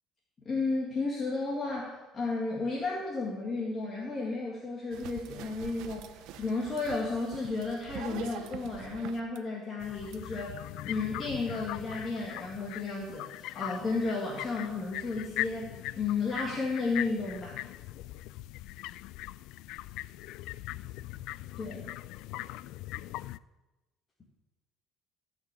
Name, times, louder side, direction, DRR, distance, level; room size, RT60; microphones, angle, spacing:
voice 1, 0.5-10.6 10.8-17.6 21.6-21.8, left 3 dB, 25° left, -3 dB, 2.0 m, -33 dB
sound 1, 4.9-9.4 10.1-10.2, right 11 dB, 70° right, 0.8 m, -45 dB
sound 2, 9.8-23.4, left 16 dB, 75° left, 0.3 m, -40 dB
15.0 x 6.1 x 8.3 m, 1.1 s
cardioid pair, 170°, 0 cm